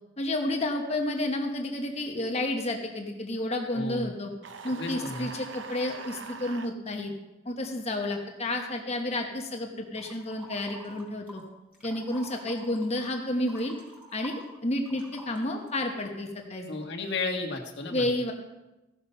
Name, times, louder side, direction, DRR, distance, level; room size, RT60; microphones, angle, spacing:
voice 1, 0.2-4.3 4.6-7.1 7.4-11.4 11.8-13.8 14.1-16.7 17.9-18.3, left 1 dB, 35° left, 2 dB, 1.0 m, -31 dB
voice 2, 3.7-4.1 4.6-5.3 16.7-18.1, left 3 dB, 65° left, 2 dB, 1.5 m, -33 dB
sound 1, 4.4-6.7, right 4 dB, 70° right, 0.7 m, -42 dB
sound 2, 9.9-11.4 11.7-16.2, right 1 dB, 5° right, 4.1 m, -48 dB
15.5 x 5.7 x 5.5 m, 1.0 s
head